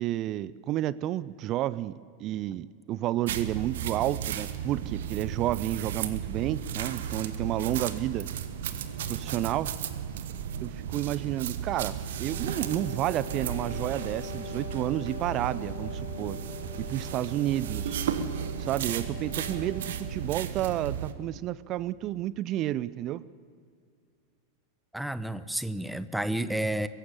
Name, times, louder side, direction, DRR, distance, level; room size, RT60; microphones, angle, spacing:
voice 1, 0.0-8.3 9.1-9.7 10.6-16.4 16.8-18.0 18.6-23.2, right 14 dB, 35° right, 19 dB, 0.5 m, -31 dB
sound 1, 3.3-21.1, right 8 dB, 60° right, 1.3 m, -34 dB
Wind instrument woodwind instrument, 12.1-20.3, left 6 dB, 45° left, 5.1 m, -44 dB
voice 2, 24.9-26.9, right 1 dB, ahead, 14 dB, 0.8 m, -30 dB
23.0 x 15.0 x 8.5 m, 2.2 s
figure-of-eight pair, 90°, 0 cm